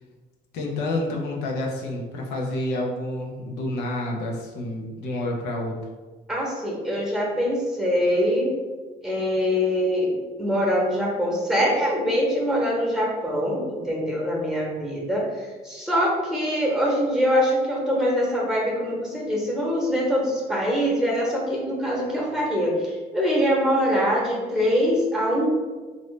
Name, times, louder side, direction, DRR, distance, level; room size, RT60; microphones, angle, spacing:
voice 1, 0.5-5.8, left 1 dB, 90° left, -1 dB, 0.7 m, -29 dB
voice 2, 6.3-8.5 9.0-25.5, equal, 5° right, -3 dB, 0.9 m, -23 dB
3.1 x 2.6 x 3.2 m, 1.3 s
cardioid pair, 110°, 17 cm